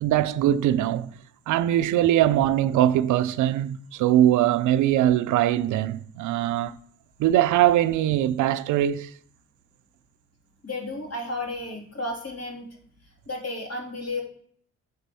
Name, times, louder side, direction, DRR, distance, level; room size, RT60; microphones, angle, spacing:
voice 1, 0.0-1.1 1.5-6.7 7.2-9.1, right 12 dB, 80° right, 0.5 m, -21 dB
voice 2, 10.6-12.7 13.3-14.2, left 2 dB, 55° left, 3.4 m, -32 dB
8.1 x 4.2 x 6.9 m
cardioid pair, 75°, 30 cm